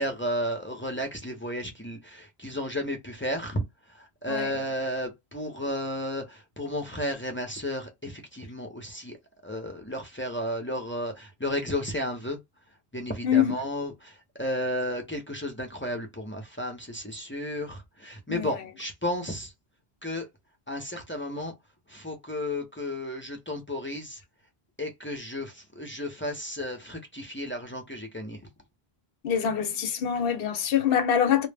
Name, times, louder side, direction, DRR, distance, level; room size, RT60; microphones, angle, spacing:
voice 1, 0.0-3.6 3.9-9.2 9.4-12.4 12.9-19.5 20.0-20.3 20.7-21.5 21.9-24.2 24.8-28.4, left 1 dB, 20° left, 0.3 m, -33 dB
voice 2, 13.2-13.6 18.3-18.5 29.2-31.5, left 8 dB, 65° left, 0.7 m, -24 dB
2.1 x 2.0 x 3.3 m
omnidirectional pair, 1.1 m